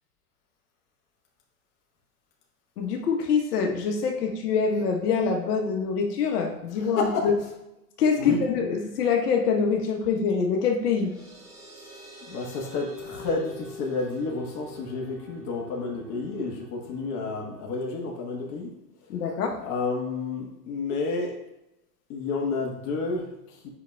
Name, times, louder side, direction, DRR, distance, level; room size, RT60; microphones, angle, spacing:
voice 1, 2.8-7.3 8.0-11.1 19.1-19.6, left 5 dB, 65° left, 2 dB, 1.1 m, -25 dB
voice 2, 6.8-7.3 8.2-8.4 12.3-18.7 19.6-21.4 22.1-23.7, left 3 dB, 35° left, -2 dB, 1.2 m, -30 dB
sound 1, 10.7-17.7, left 3 dB, 5° right, 1.8 m, -45 dB
8.0 x 5.3 x 2.2 m, 0.91 s
hypercardioid pair, 120°, 49 cm